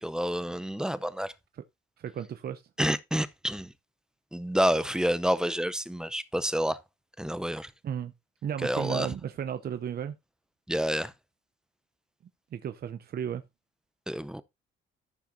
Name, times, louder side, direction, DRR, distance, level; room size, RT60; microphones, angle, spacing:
voice 1, 0.0-1.3 2.8-3.7 4.3-6.8 7.2-7.7 8.6-9.1 10.7-11.1 14.1-14.4, equal, 5° right, 0.7 m, -28 dB
voice 2, 2.0-2.6 7.8-8.1 8.4-10.1 12.5-13.4, right 9 dB, 50° right, 0.7 m, -34 dB
14.0 x 5.8 x 2.7 m
cardioid pair, 90°, 20 cm